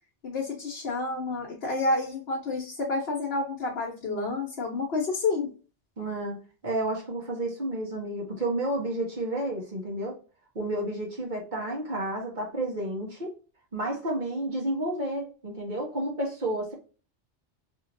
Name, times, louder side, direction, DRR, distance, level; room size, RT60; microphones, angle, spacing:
voice 1, 0.2-5.5, left 3 dB, 60° left, -2 dB, 1.0 m, -29 dB
voice 2, 6.0-10.2 10.5-13.3 13.7-16.7, right 1 dB, 45° right, 0 dB, 1.1 m, -31 dB
3.0 x 2.8 x 2.5 m, 0.37 s
omnidirectional pair, 1.2 m